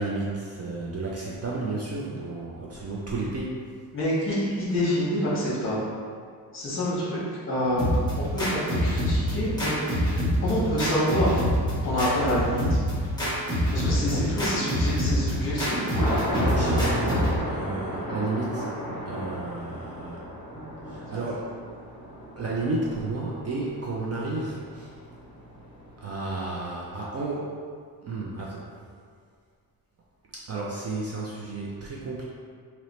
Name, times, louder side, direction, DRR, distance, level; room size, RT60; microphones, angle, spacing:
voice 1, 0.0-3.7 16.3-18.7 19.1-20.2 20.8-21.6 22.4-24.9 26.0-27.6 28.0-28.7 30.3-32.2, right 3 dB, 40° right, -4 dB, 0.4 m, -32 dB
voice 2, 3.9-5.8 6.5-7.2 7.5-7.9 8.2-9.8 10.4-11.4 11.8-12.8 13.7-15.9, equal, 30° left, -8 dB, 1.4 m, -27 dB
sound 1, 7.8-17.4, equal, 10° left, 1.1 m, -26 dB
Thunder, 15.1-26.4, equal, 10° right, 0.9 m, -34 dB
3.1 x 2.9 x 4.1 m, 2.1 s
wide cardioid pair, 160°, 41 cm